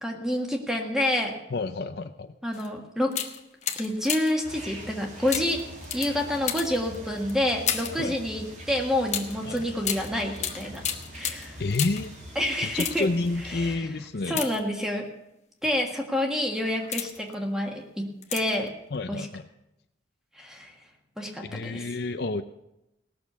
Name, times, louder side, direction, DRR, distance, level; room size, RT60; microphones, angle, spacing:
voice 1, 0.0-1.3 2.4-3.2 3.8-5.6 5.9-10.8 11.1-11.6 12.3-13.1 13.4-13.8 14.3-15.0 15.6-18.7 19.1-19.3 20.4-20.7 21.2-21.9, left 1 dB, 5° right, 1 dB, 1.6 m, -28 dB
voice 2, 1.5-2.3 8.0-8.2 9.5-9.6 11.6-12.1 12.6-14.4 18.9-19.4 21.5-22.4, left 3 dB, 55° left, 9 dB, 0.6 m, -29 dB
sound 1, 2.5-2.7 3.1-4.5 5.3-8.1 9.1-12.1 12.6-13.3 14.2-15.1 15.7-16.0 16.5-17.3 18.2-18.7 18.9-19.0, left 9 dB, 40° left, 1.0 m, -33 dB
sound 2, 4.4-13.8, equal, 40° right, 2.4 m, -43 dB
18.0 x 6.8 x 6.9 m, 0.87 s
head